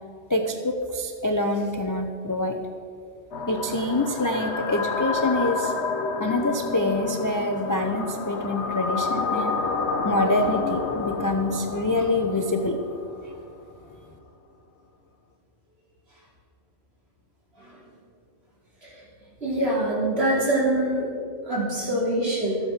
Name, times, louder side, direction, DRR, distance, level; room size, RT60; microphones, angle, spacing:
voice 1, 0.3-2.6 3.5-5.7 6.2-9.6 10.0-12.8, left 2 dB, 25° left, 4 dB, 0.5 m, -25 dB
sound 1, 3.3-13.4, left 4 dB, 65° left, 1.1 m, -29 dB
voice 2, 19.4-21.1 21.4-22.6, right 1 dB, 55° right, -5 dB, 3.4 m, -24 dB
13.0 x 8.5 x 5.9 m, 2.3 s
omnidirectional pair, 1.3 m